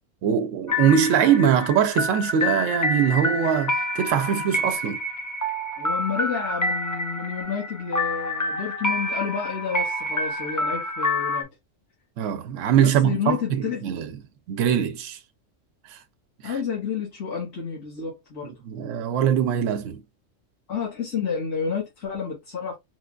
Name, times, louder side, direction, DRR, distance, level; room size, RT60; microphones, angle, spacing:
voice 1, 0.2-5.0 12.2-14.1 14.5-15.2 15.9-16.0 16.4-16.5 18.4-20.0, right 8 dB, 75° right, 0.9 m, -22 dB
sound 1, 0.7-11.4, left 1 dB, 25° left, 0.4 m, -28 dB
voice 2, 5.8-11.5 12.8-13.9 16.4-18.5 20.7-22.8, left 6 dB, 80° left, 1.7 m, -30 dB
4.4 x 2.2 x 2.3 m
omnidirectional pair, 1.3 m